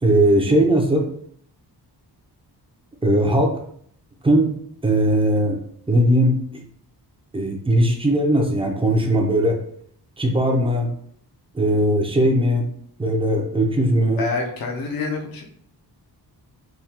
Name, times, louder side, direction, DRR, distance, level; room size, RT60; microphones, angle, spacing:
voice 1, 0.0-1.1 3.0-3.5 4.2-4.5 4.8-5.6 5.9-6.6 7.3-9.6 10.2-10.9 11.5-12.7 13.0-14.2, right 1 dB, 15° right, 2 dB, 0.6 m, -19 dB
voice 2, 14.2-15.4, left 4 dB, 55° left, 1 dB, 0.7 m, -27 dB
3.6 x 2.3 x 2.8 m, 0.64 s
wide cardioid pair, 95°, 41 cm